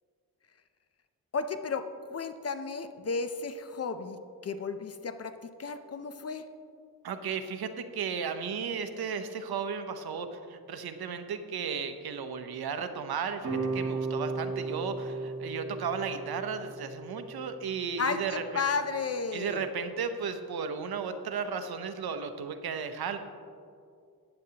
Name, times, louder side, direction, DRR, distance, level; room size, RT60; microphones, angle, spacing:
voice 1, 1.3-4.2 4.4-6.5 18.0-19.7, left 4 dB, 40° left, 10 dB, 0.5 m, -33 dB
voice 2, 7.0-18.6 19.3-23.2, right 6 dB, 75° right, 8 dB, 0.8 m, -34 dB
sound 1, 13.4-18.5, right 3 dB, 35° right, 1.8 m, -36 dB
14.5 x 9.5 x 2.9 m, 2.4 s
wide cardioid pair, 135°, 38 cm